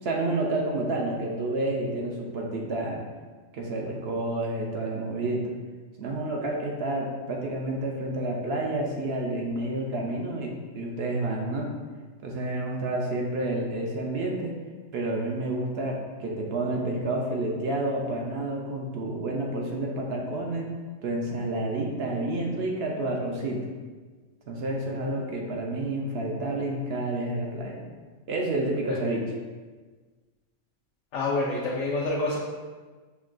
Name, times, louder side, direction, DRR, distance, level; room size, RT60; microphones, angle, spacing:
voice 1, 0.0-3.0 3.5-5.4 6.0-11.7 12.2-14.5 14.9-20.7 21.0-23.6 24.5-27.8 28.3-29.2, right 2 dB, 65° right, -1 dB, 0.7 m, -29 dB
voice 2, 31.1-32.4, left 2 dB, 80° left, -5 dB, 1.0 m, -28 dB
5.8 x 2.2 x 2.4 m, 1.4 s
omnidirectional pair, 1.3 m